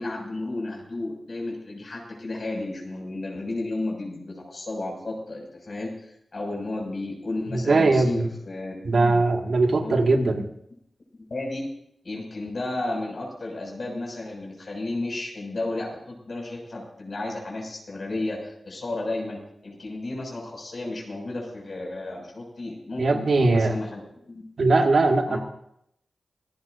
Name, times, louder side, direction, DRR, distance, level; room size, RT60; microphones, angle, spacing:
voice 1, 0.0-9.2 9.8-10.4 11.1-11.7 12.0-24.0 24.3-24.4 25.3-25.4, left 2 dB, 60° left, -1 dB, 6.3 m, -33 dB
voice 2, 7.5-8.3 8.8-10.4 23.0-23.8 24.6-25.4, right 3 dB, 70° right, 3 dB, 1.9 m, -20 dB
26.0 x 15.0 x 2.7 m, 0.75 s
cardioid pair, 40°, 0 cm